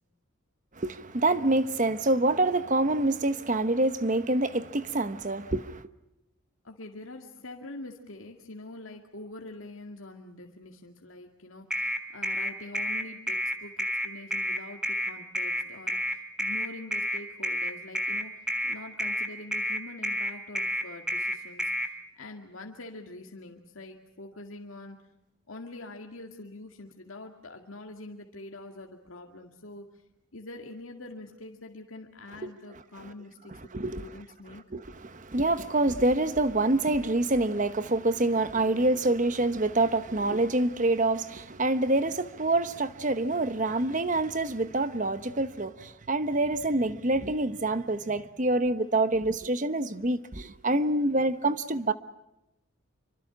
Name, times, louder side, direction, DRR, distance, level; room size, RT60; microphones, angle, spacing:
voice 1, 0.8-5.8 32.4-32.5 33.0-33.1 33.7-34.0 34.7-51.9, right 2 dB, 40° right, 1.1 m, -26 dB
voice 2, 6.6-25.1 25.5-30.0 30.3-33.7 34.0-34.6, left 2 dB, 75° left, 2.1 m, -45 dB
sound 1, 11.7-21.9, equal, 5° right, 1.8 m, -29 dB
27.5 x 25.0 x 6.0 m
head